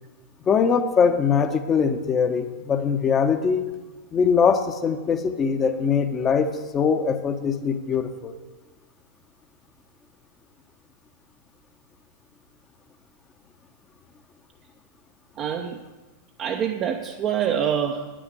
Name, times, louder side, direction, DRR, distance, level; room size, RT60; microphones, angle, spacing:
voice 1, 0.5-3.6 4.1-8.3, left 6 dB, 25° left, 8 dB, 0.9 m, -22 dB
voice 2, 15.4-15.8 16.4-18.1, right 8 dB, 35° right, 3 dB, 0.7 m, -25 dB
9.8 x 6.3 x 7.8 m, 1.2 s
figure-of-eight pair, 95°, 0 cm